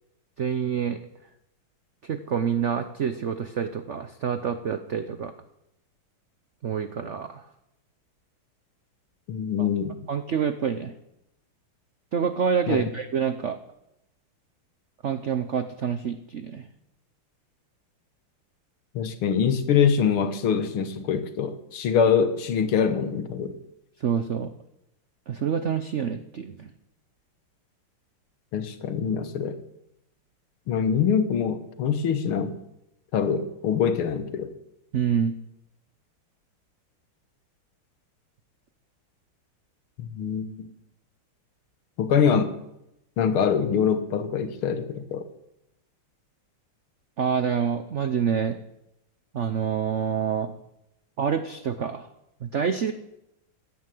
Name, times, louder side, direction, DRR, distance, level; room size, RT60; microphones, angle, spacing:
voice 1, 0.4-1.0 2.0-5.3 6.6-7.4 9.6-9.7 10.1-10.9 12.1-13.6 15.0-16.6 24.0-24.5 25.3-26.7 34.9-35.3 47.2-48.6 49.3-50.5 51.2-52.1 52.4-52.9, right 7 dB, 90° right, 10 dB, 0.6 m, -27 dB
voice 2, 9.3-10.0 12.7-12.8 19.0-23.5 28.5-29.6 30.7-32.6 33.1-34.5 40.0-40.7 42.0-42.6 43.2-45.3, left 7 dB, 80° left, 10 dB, 2.1 m, -24 dB
15.5 x 10.0 x 7.7 m, 0.86 s
omnidirectional pair, 2.3 m